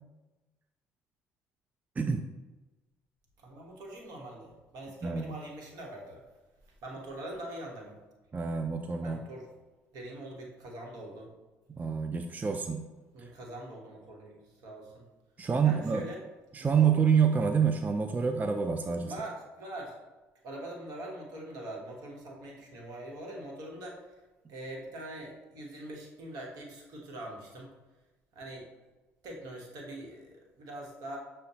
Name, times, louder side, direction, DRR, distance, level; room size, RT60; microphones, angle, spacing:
voice 1, 2.0-2.3 5.0-5.3 8.3-9.2 11.8-12.9 13.2-13.3 15.4-16.1 16.5-19.1, right 6 dB, 25° right, 5 dB, 0.3 m, -27 dB
voice 2, 3.4-6.2 6.7-8.0 9.0-9.5 9.9-11.3 13.1-15.1 15.6-16.2 16.5-16.9 19.0-19.9 20.4-24.2 24.5-27.7 28.3-28.7 29.2-31.2, right 1 dB, 65° right, 0 dB, 1.0 m, -43 dB
6.4 x 2.1 x 2.8 m, 1.1 s
hypercardioid pair, 60°, 7 cm